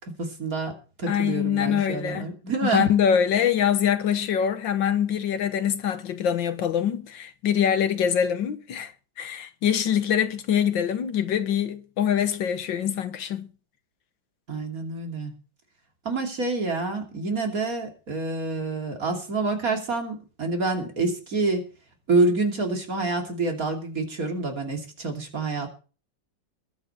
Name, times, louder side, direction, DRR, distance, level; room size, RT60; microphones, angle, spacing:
voice 1, 0.0-2.9 14.5-15.3 16.0-21.6 22.1-25.7, right 3 dB, 50° right, 3.3 m, -27 dB
voice 2, 1.1-2.3 2.6-8.9 9.2-13.5, left 8 dB, 90° left, 1.9 m, -24 dB
21.0 x 8.8 x 4.4 m
omnidirectional pair, 2.0 m